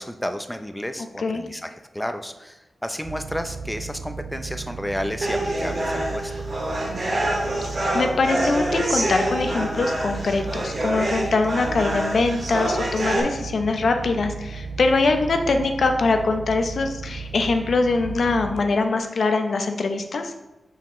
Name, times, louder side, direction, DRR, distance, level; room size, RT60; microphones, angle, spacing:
voice 1, 0.0-6.3, equal, 5° left, 7 dB, 0.5 m, -31 dB
sound 1, 3.0-18.6, right 4 dB, 80° right, 0.6 m, -35 dB
sound 2, 5.2-13.2, right 1 dB, 45° right, 1.9 m, -26 dB
voice 2, 7.6-20.3, left 3 dB, 65° left, 5 dB, 0.7 m, -23 dB
6.9 x 5.7 x 3.1 m, 1.0 s
wide cardioid pair, 115°, 0 cm